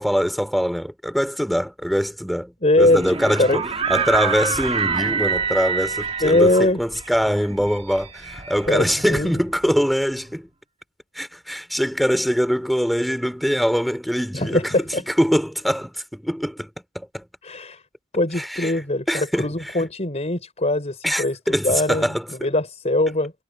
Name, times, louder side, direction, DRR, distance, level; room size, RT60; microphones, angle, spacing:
voice 1, 0.0-3.6 3.9-10.5 11.1-14.6 15.1-16.7 16.9-17.2 18.4-18.7 19.1-19.5 21.0-22.3, equal, ahead, 3.1 m, -23 dB
voice 2, 2.6-3.0 3.4-3.6 6.2-6.8 8.7-9.3 14.3-15.0 17.4-17.8 18.1-21.4 21.6-23.3, left 2 dB, 35° left, 4.5 m, -21 dB
sound 1, 2.8-9.7, right 5 dB, 30° right, 1.7 m, -27 dB
head